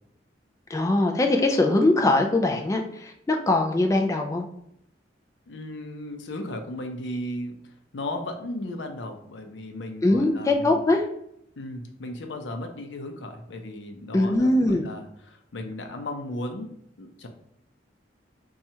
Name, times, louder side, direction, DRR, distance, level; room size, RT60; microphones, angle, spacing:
voice 1, 0.7-4.5 10.0-11.0 14.1-14.9, left 2 dB, 15° left, 3 dB, 0.3 m, -22 dB
voice 2, 5.5-10.8 11.6-17.3, left 1 dB, 90° left, 5 dB, 0.6 m, -36 dB
2.8 x 2.3 x 4.2 m, 0.74 s
head